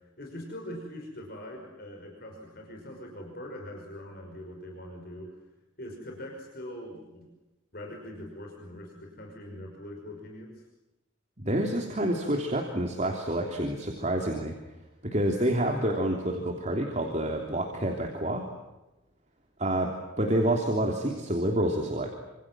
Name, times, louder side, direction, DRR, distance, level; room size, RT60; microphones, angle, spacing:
voice 1, 0.2-5.3 5.8-7.3 7.7-10.6, left 1 dB, 50° left, 1 dB, 5.5 m, -42 dB
voice 2, 11.4-14.5 15.0-18.4 19.6-19.9 20.2-22.1, right 1 dB, 35° right, 1 dB, 3.2 m, -28 dB
28.0 x 27.0 x 7.6 m, 1.0 s
head